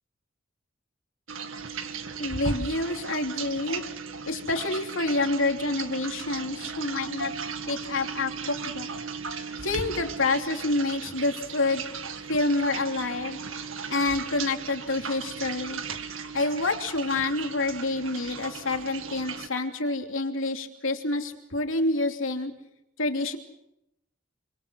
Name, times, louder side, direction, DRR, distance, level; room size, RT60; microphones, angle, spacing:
sound 1, 1.3-19.5, right 5 dB, 85° right, 2.0 m, -36 dB
voice 1, 2.2-3.8 4.3-7.3 7.7-8.9 9.6-11.8 12.3-13.4 13.9-15.8 16.3-22.5 23.0-23.4, left 2 dB, 85° left, 4 dB, 2.9 m, -28 dB
27.0 x 25.5 x 6.4 m, 0.85 s
head